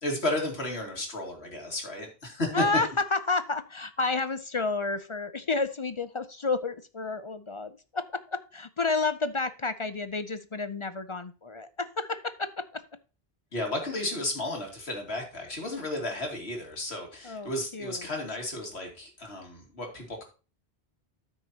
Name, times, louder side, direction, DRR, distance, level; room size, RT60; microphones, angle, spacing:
voice 1, 0.0-2.6 13.5-20.2, left 1 dB, 90° left, 2 dB, 2.6 m, -33 dB
voice 2, 2.5-12.8 17.2-18.1, left 3 dB, 40° left, 12 dB, 0.5 m, -30 dB
13.0 x 6.3 x 2.8 m, 0.33 s
omnidirectional pair, 1.0 m